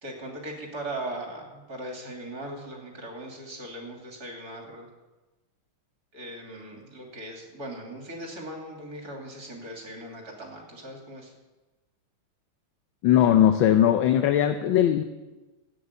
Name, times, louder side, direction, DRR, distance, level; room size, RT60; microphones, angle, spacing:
voice 1, 0.0-4.9 6.1-11.3, right 1 dB, 45° right, 0 dB, 3.4 m, -39 dB
voice 2, 13.0-15.0, left 10 dB, 70° left, 8 dB, 1.4 m, -19 dB
13.0 x 9.5 x 8.2 m, 1.1 s
omnidirectional pair, 2.3 m